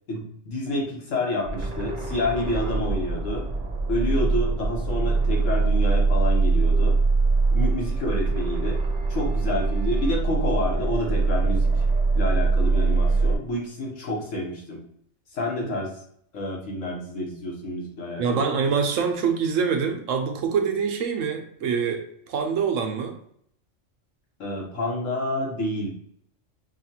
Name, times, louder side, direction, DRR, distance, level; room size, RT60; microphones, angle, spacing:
voice 1, 0.1-3.4 3.9-7.0 7.5-8.8 9.1-11.7 12.1-14.8 15.3-15.9 16.3-18.5 24.4-25.9, left 1 dB, 75° left, -1 dB, 1.5 m, -29 dB
sound 1, 1.4-13.4, right 3 dB, 45° right, 0.5 m, -23 dB
voice 2, 18.2-23.2, right 6 dB, 85° right, 4 dB, 1.1 m, -25 dB
5.5 x 2.4 x 2.8 m, 0.67 s
omnidirectional pair, 1.3 m